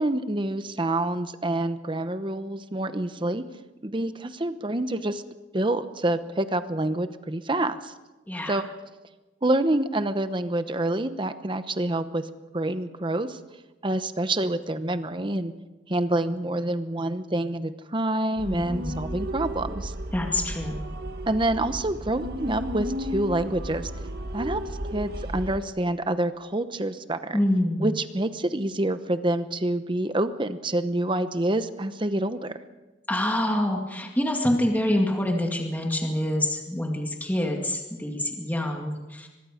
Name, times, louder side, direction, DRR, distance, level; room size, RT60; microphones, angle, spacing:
voice 1, 0.0-3.4 3.8-5.2 5.5-7.9 8.5-8.7 9.4-12.3 12.5-13.4 13.8-15.5 15.9-19.9 21.3-23.9 24.3-24.6 24.9-27.4 27.8-32.6, right 1 dB, 25° right, 10 dB, 0.9 m, -27 dB
voice 2, 8.3-8.6 18.4-19.0 20.1-20.9 27.3-27.9 33.1-39.3, left 1 dB, 10° left, 1 dB, 2.0 m, -26 dB
sound 1, 18.4-25.6, equal, 55° right, 1.3 m, -34 dB
24.5 x 21.5 x 5.1 m, 1.1 s
head